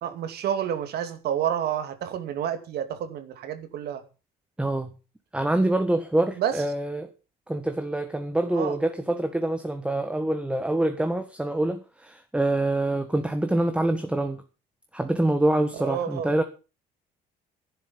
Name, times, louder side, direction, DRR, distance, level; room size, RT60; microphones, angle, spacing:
voice 1, 0.0-4.0 6.4-6.5 8.5-8.8 15.8-16.3, right 9 dB, 70° right, 2.6 m, -29 dB
voice 2, 4.6-4.9 5.3-7.1 7.5-14.4 14.9-16.4, right 1 dB, 5° right, 1.6 m, -25 dB
11.5 x 11.0 x 7.1 m
cardioid pair, 110°, 17 cm